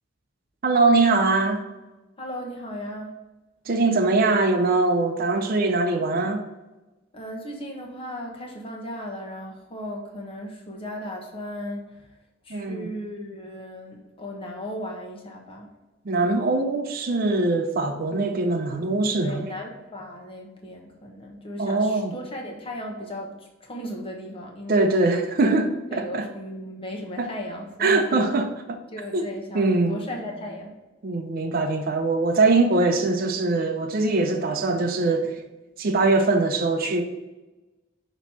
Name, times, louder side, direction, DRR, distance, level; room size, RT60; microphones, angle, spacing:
voice 1, 0.6-1.6 3.7-6.4 12.5-12.9 16.1-19.5 21.6-22.1 24.7-26.3 27.2-27.3 27.8-28.5 29.1-29.2 29.5-30.0 31.0-35.4 35.8-37.0, right 3 dB, 50° right, 0.6 m, -22 dB
voice 2, 2.2-3.2 7.1-12.1 12.4-15.7 19.1-25.0 25.4-25.5 25.9-28.4 28.9-30.8, left 1 dB, 30° left, 1.2 m, -36 dB
6.2 x 3.0 x 5.5 m
head